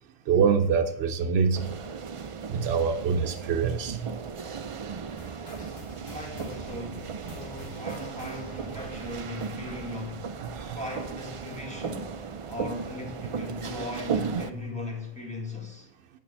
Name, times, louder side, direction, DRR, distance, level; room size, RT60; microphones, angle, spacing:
voice 1, 0.3-1.7 2.5-4.1 10.5-10.8 14.3-14.5, right 6 dB, 85° right, 0.8 m, -25 dB
sound 1, 1.5-14.5, right 6 dB, 50° right, 0.4 m, -36 dB
sound 2, 5.2-12.0 12.3-12.6 13.2-13.3 14.1-14.2, left 2 dB, 60° left, 1.8 m, -49 dB
voice 2, 6.1-10.4 10.7-12.1 12.5-15.9, left 2 dB, 5° left, 2.0 m, -38 dB
8.6 x 6.7 x 3.3 m
omnidirectional pair, 1.0 m